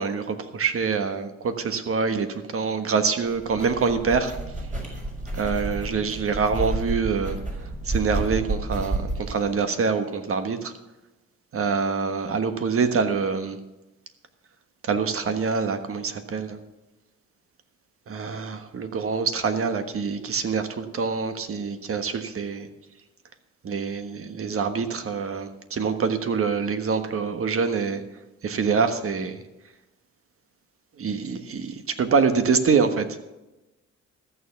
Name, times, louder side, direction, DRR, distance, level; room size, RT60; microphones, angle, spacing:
voice 1, 0.0-4.3 5.3-7.4 7.8-10.7 11.5-13.6 14.8-16.6 18.1-22.7 23.6-28.0 28.4-29.4 31.0-33.2, right 5 dB, 45° right, 9 dB, 1.4 m, -25 dB
sound 1, 3.3-9.4, right 2 dB, 25° right, 4.8 m, -31 dB
14.0 x 6.9 x 7.0 m, 1.0 s
cardioid pair, 90°, 30 cm